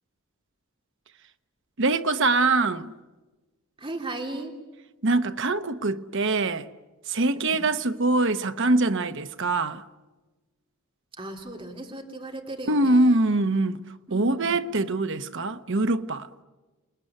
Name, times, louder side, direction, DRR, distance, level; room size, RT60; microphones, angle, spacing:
voice 1, 1.8-2.9 5.0-6.7 7.1-9.8 12.7-13.8 14.1-16.3, right 2 dB, 55° right, 1.1 m, -23 dB
voice 2, 3.8-4.6 7.4-7.7 11.2-13.2 14.1-14.6, right 2 dB, 25° right, 3.1 m, -37 dB
29.0 x 20.5 x 9.9 m
head